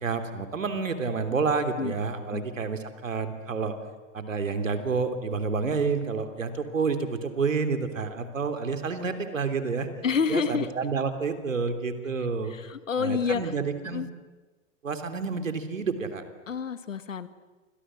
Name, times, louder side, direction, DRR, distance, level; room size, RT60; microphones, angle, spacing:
voice 1, 0.0-3.7 4.1-9.9 10.3-12.5 13.0-14.0 14.8-16.2, right 5 dB, 85° right, 8 dB, 3.4 m, -29 dB
voice 2, 10.0-10.7 12.5-13.5 13.8-14.1 16.5-17.3, left 6 dB, 80° left, 12 dB, 1.9 m, -28 dB
29.5 x 25.5 x 7.7 m, 1.2 s
hypercardioid pair, 110°, 38 cm